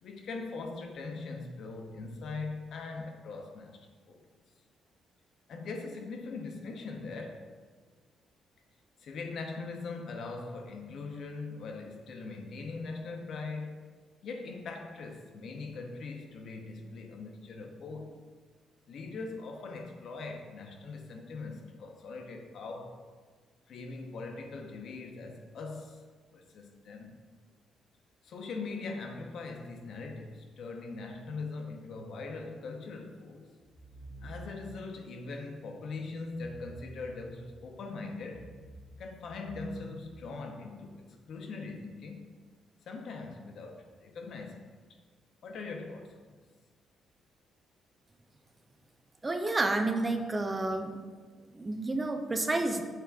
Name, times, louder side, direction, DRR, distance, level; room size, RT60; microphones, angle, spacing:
voice 1, 0.0-4.2 5.5-7.5 9.0-13.8 14.2-18.1 18.9-23.0 23.7-26.0 26.3-27.2 28.2-33.5 34.2-38.5 39.0-42.3 42.9-44.7 45.4-46.3, left 3 dB, 65° left, 0.5 m, -41 dB
sound 1, 33.6-34.9 36.3-37.7 38.2-40.7, right 1 dB, 15° left, 0.7 m, -50 dB
voice 2, 49.2-51.1 51.5-52.8, right 2 dB, 25° right, 0.4 m, -30 dB
5.6 x 3.4 x 2.3 m
cardioid pair, 90°, 0 cm